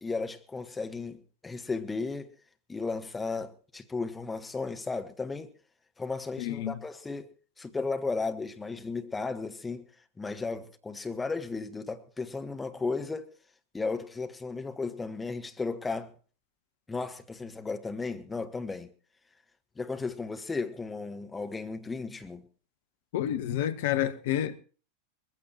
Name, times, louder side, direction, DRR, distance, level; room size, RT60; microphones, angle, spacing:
voice 1, 0.0-2.3 2.7-5.5 6.0-7.3 7.6-9.8 10.2-13.3 13.7-16.1 16.9-18.9 19.7-22.5, left 4 dB, 10° left, 1.4 m, -34 dB
voice 2, 6.4-6.8 23.1-24.6, left 11 dB, 55° left, 1.1 m, -29 dB
21.0 x 15.5 x 3.0 m
figure-of-eight pair, 90°, 0 cm